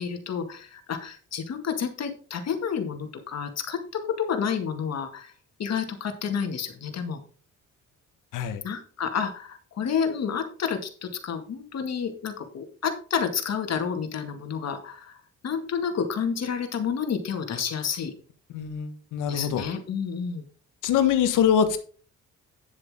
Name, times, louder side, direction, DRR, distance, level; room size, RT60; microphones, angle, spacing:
voice 1, 0.0-5.3 5.6-7.2 8.6-15.2 15.4-18.1 19.3-20.4, left 7 dB, 60° left, 6 dB, 2.1 m, -30 dB
voice 2, 18.5-19.6 20.8-21.8, left 8 dB, 85° left, 9 dB, 1.4 m, -23 dB
9.7 x 7.9 x 3.7 m, 0.41 s
cardioid pair, 90°, 30 cm